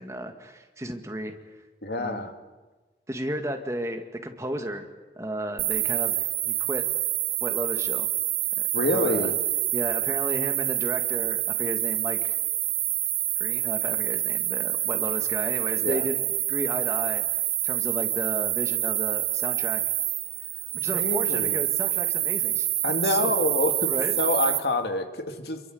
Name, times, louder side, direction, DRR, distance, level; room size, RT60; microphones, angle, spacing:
voice 1, 0.0-1.3 2.0-2.3 3.1-4.8 5.2-6.9 7.4-8.1 8.9-9.3 9.7-12.4 13.4-19.8 20.8-22.7 23.0-23.3 23.9-24.2, right 1 dB, 15° right, 5 dB, 1.9 m, -33 dB
voice 2, 1.8-2.3 8.7-9.3 15.8-16.1 20.9-21.6 22.8-25.6, left 2 dB, 65° left, 6 dB, 2.4 m, -27 dB
sound 1, 5.6-24.6, right 14 dB, 70° right, 1.7 m, -27 dB
28.0 x 23.0 x 8.0 m, 1.2 s
head